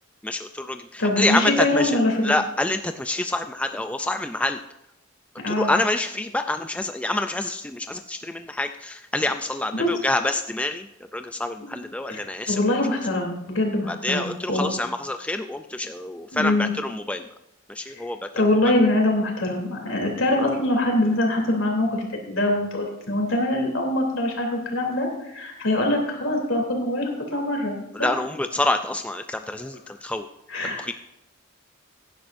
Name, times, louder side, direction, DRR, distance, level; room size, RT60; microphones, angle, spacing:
voice 1, 0.2-4.6 5.5-10.9 11.1-12.6 13.9-17.2 17.7-18.3 27.9-30.3 30.6-30.9, left 2 dB, 5° left, 7 dB, 0.3 m, -27 dB
voice 2, 1.0-2.3 5.4-5.7 9.8-9.9 11.6-11.8 12.1-12.2 12.5-14.7 16.3-16.7 17.9-18.0 18.3-28.1 30.5-30.9, left 1 dB, 70° left, 1 dB, 3.1 m, -23 dB
16.5 x 10.5 x 2.6 m, 0.88 s
head